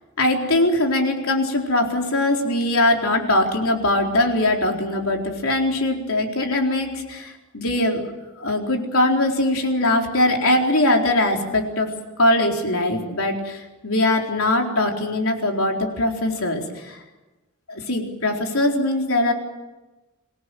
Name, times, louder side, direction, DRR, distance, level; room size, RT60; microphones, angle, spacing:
voice 1, 0.2-8.0 8.4-11.9 12.2-17.0 17.7-19.3, left 1 dB, 75° left, 2 dB, 4.2 m, -21 dB
27.0 x 17.5 x 9.3 m, 1.1 s
head